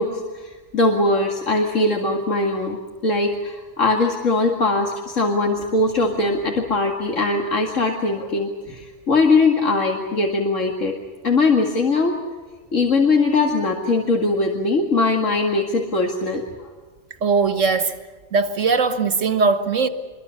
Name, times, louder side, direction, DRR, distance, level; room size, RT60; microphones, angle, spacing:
voice 1, 0.0-2.8 3.0-11.0 11.2-12.2 12.7-16.7, left 3 dB, 90° left, 2.5 m, -21 dB
voice 2, 17.2-18.0 18.3-19.9, right 4 dB, 90° right, 2.1 m, -19 dB
27.0 x 23.0 x 7.0 m
omnidirectional pair, 1.3 m